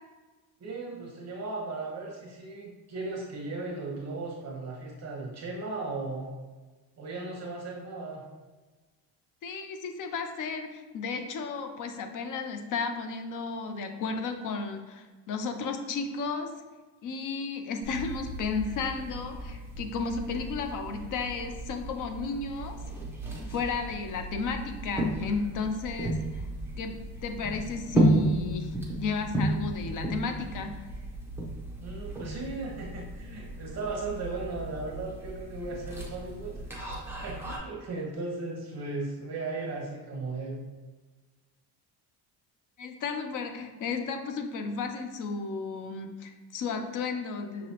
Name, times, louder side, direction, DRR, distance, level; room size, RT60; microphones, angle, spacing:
voice 1, 0.6-6.3 7.0-8.2 31.8-36.6 37.2-40.6, right 3 dB, 40° right, -2 dB, 1.0 m, -36 dB
voice 2, 9.4-16.5 17.0-22.8 23.5-26.5 26.8-26.9 27.2-30.9 42.8-47.7, left 4 dB, 50° left, 6 dB, 0.5 m, -33 dB
sound 1, 17.8-37.6, right 1 dB, 5° right, 0.7 m, -33 dB
5.9 x 3.0 x 2.9 m, 1.3 s
cardioid pair, 135°, 40 cm